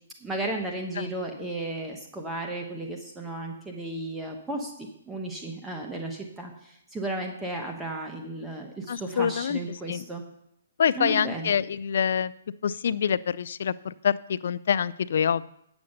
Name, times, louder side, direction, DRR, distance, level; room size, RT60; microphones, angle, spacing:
voice 1, 0.2-10.2 10.9-11.5, right 2 dB, 5° right, 1 dB, 1.0 m, -34 dB
voice 2, 8.9-10.0 10.8-12.3 12.6-15.5, left 7 dB, 65° left, 19 dB, 0.4 m, -26 dB
9.3 x 7.1 x 6.5 m, 0.78 s
hypercardioid pair, 150°, 0 cm